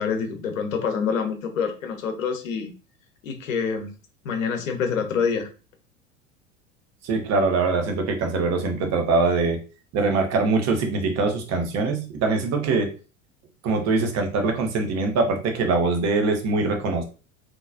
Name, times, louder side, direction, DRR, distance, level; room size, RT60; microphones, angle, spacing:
voice 1, 0.0-2.7 3.2-3.9 4.2-5.5, left 6 dB, 70° left, 6 dB, 0.9 m, -26 dB
voice 2, 7.0-9.6 9.9-12.9 13.6-17.0, right 3 dB, 40° right, 4 dB, 1.0 m, -23 dB
4.0 x 2.9 x 2.5 m, 0.34 s
figure-of-eight pair, 75°, 41 cm